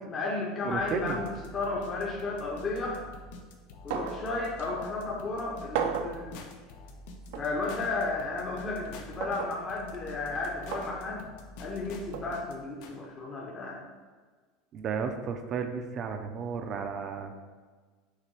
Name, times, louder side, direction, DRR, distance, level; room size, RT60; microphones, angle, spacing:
voice 1, 0.1-3.0 3.8-6.3 7.4-11.3 11.6-13.8, left 3 dB, 20° left, -3 dB, 0.8 m, -33 dB
voice 2, 0.6-1.2 14.7-17.4, right 6 dB, 30° right, 6 dB, 0.6 m, -33 dB
sound 1, 0.7-12.9, left 1 dB, 85° left, 1.0 m, -47 dB
sound 2, 3.9-4.2 4.6-4.7 5.7-6.2 7.3-7.5 9.2-9.6 10.7-10.9 12.1-12.3, right 7 dB, 70° right, 0.7 m, -33 dB
sound 3, 6.3-6.9 7.7-8.2 8.9-9.4 9.8-10.0 10.4-10.9 11.6-12.1 12.8-13.0 13.3-13.4, left 5 dB, 55° left, 0.8 m, -48 dB
6.6 x 3.4 x 6.1 m, 1.4 s
supercardioid pair, 170°, 0 cm